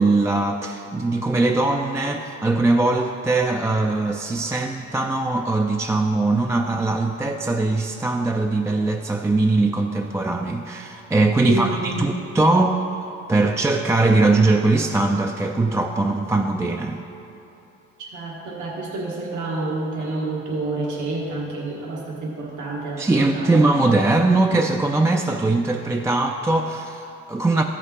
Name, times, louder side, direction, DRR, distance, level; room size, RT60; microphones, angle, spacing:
voice 1, 0.0-17.0 23.0-27.6, right 2 dB, 10° right, 3 dB, 0.3 m, -21 dB
voice 2, 11.4-12.0 18.1-23.6, right 2 dB, 75° right, -3 dB, 1.4 m, -29 dB
13.5 x 5.2 x 4.1 m, 3.0 s
cardioid pair, 90°, 30 cm